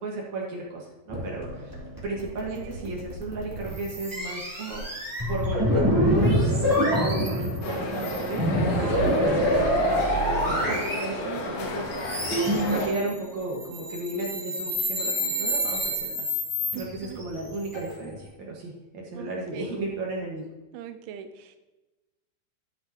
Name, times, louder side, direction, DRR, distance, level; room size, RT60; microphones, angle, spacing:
voice 1, 0.0-1.7 2.0-12.2 12.7-16.3 16.7-20.5, right 2 dB, 55° right, -2 dB, 2.3 m, -34 dB
sound 1, 1.1-11.4 12.0-18.2, equal, 5° right, 2.4 m, -26 dB
voice 2, 2.2-2.9 16.7-17.2 19.1-19.7 20.7-21.6, right 8 dB, 90° right, 8 dB, 3.3 m, -42 dB
sound 2, 7.6-12.9, left 2 dB, 80° left, 4.1 m, -32 dB
13.0 x 8.8 x 3.0 m, 1.1 s
omnidirectional pair, 5.3 m